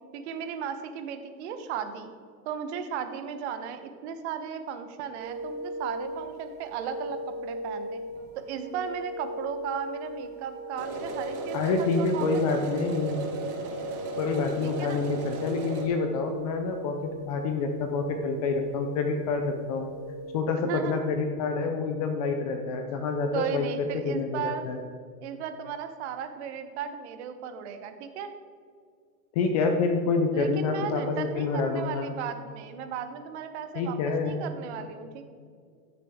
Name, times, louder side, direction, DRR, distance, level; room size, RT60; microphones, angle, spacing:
voice 1, 0.1-2.1 2.4-8.0 8.5-12.6 14.6-15.0 20.7-21.1 23.3-24.7 25.2-28.3 30.3-34.0 34.2-35.2, right 7 dB, 45° right, 8 dB, 1.0 m, -35 dB
sound 1, 5.2-20.4, equal, 20° right, 1.9 m, -39 dB
sound 2, 10.8-15.9, right 4 dB, 65° right, 2.4 m, -36 dB
voice 2, 11.5-13.2 14.2-19.9 20.3-24.8 29.3-32.1 33.7-34.4, left 4 dB, 25° left, 4 dB, 0.4 m, -27 dB
15.0 x 6.7 x 3.6 m, 2.1 s
hypercardioid pair, 145°, 49 cm